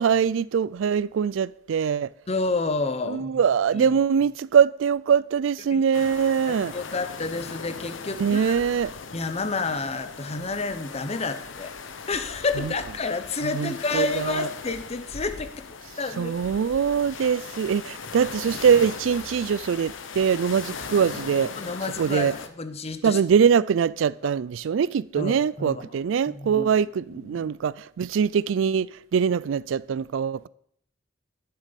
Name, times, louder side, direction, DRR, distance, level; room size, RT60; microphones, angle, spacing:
voice 1, 0.0-2.1 3.1-6.7 8.1-8.9 12.6-12.7 13.4-14.5 16.2-21.5 22.0-22.3 23.0-30.5, right 7 dB, 80° right, 0.3 m, -23 dB
voice 2, 2.3-3.3 3.7-4.0 5.7-5.8 6.5-8.7 9.1-11.7 12.1-15.7 16.0-16.3 21.5-23.2 24.2-24.3 25.2-25.8 26.4-26.7 27.3-27.5, left 3 dB, 35° left, 0.8 m, -29 dB
sound 1, 5.9-22.5, left 5 dB, 80° left, 0.9 m, -39 dB
11.5 x 7.3 x 5.2 m
head